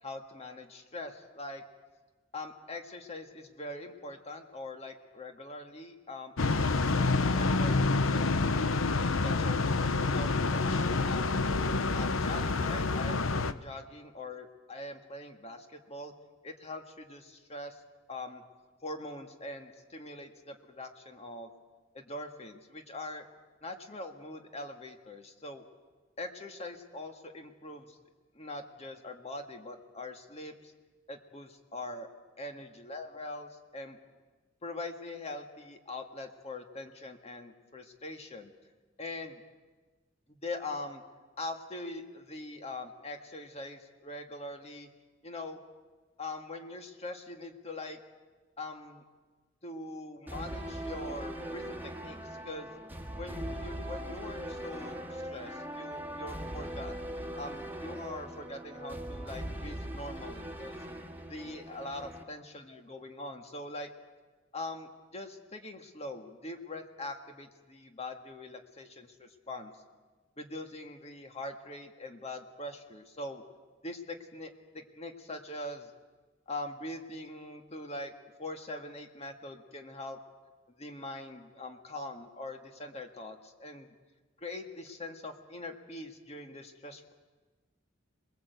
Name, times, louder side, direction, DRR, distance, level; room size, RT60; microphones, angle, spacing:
voice 1, 0.0-1.6 2.3-7.8 8.1-9.7 10.0-11.3 11.9-16.1 16.4-17.8 18.1-18.4 18.8-21.5 21.9-23.3 23.6-25.6 26.2-28.0 28.3-30.7 31.1-32.1 32.4-34.0 34.6-38.5 39.0-39.4 40.3-41.0 41.4-44.9 45.2-45.6 46.2-48.0 48.6-49.0 49.6-52.7 53.2-56.9 57.3-60.8 61.3-63.9 64.5-69.7 70.4-73.4 73.8-75.9 76.5-78.1 78.4-80.2 80.8-83.9 84.4-87.1, left 2 dB, 30° left, 5 dB, 1.8 m, -42 dB
sound 1, 6.4-13.5, left 3 dB, 90° left, 0.9 m, -28 dB
sound 2, 50.3-62.2, right 1 dB, 10° right, 1.9 m, -40 dB
27.0 x 21.0 x 8.2 m, 1.3 s
head